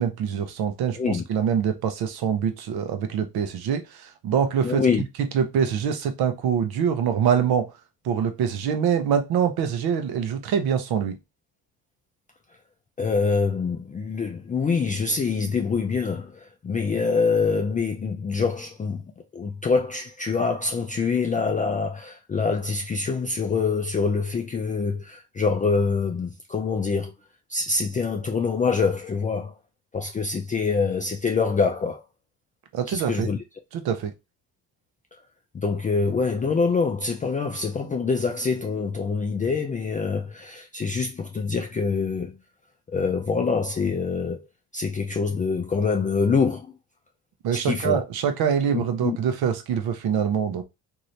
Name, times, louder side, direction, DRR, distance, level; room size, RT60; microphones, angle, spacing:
voice 1, 0.0-4.8 5.2-7.7 8.0-11.2 32.7-33.3 33.7-34.1 47.4-50.6, right 7 dB, 65° right, 0.8 m, -24 dB
voice 2, 4.6-5.0 13.0-19.0 19.3-27.1 27.5-29.5 29.9-32.0 32.9-33.4 35.5-42.4 42.9-44.5 44.7-46.7 47.5-48.0 48.7-49.2, left 4 dB, 20° left, 0.4 m, -25 dB
3.1 x 2.7 x 2.7 m
cardioid pair, 95°, 40 cm